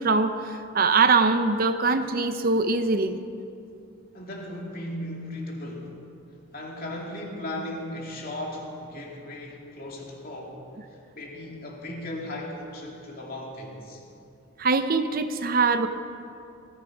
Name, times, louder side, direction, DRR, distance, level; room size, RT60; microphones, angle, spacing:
voice 1, 0.0-3.2 14.6-15.9, right 4 dB, 45° right, 9 dB, 0.7 m, -22 dB
voice 2, 4.1-5.9 6.5-10.6 11.1-14.0, left 1 dB, 45° left, -1 dB, 2.8 m, -36 dB
19.5 x 14.0 x 5.1 m, 2.6 s
head